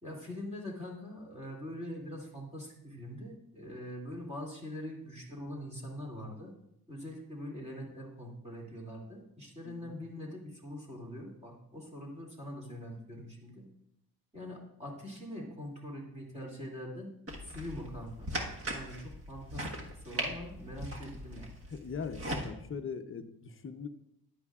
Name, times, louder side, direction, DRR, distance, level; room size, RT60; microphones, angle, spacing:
voice 1, 0.0-6.5 6.9-13.7 14.3-17.1 17.4-21.5, left 1 dB, 15° right, -2 dB, 2.5 m, -43 dB
voice 2, 9.6-10.0 21.7-23.9, left 5 dB, 35° left, 5 dB, 0.7 m, -40 dB
sound 1, 17.3-22.5, right 1 dB, 35° right, 1.5 m, -39 dB
15.0 x 10.5 x 2.4 m, 0.80 s
wide cardioid pair, 135°, 38 cm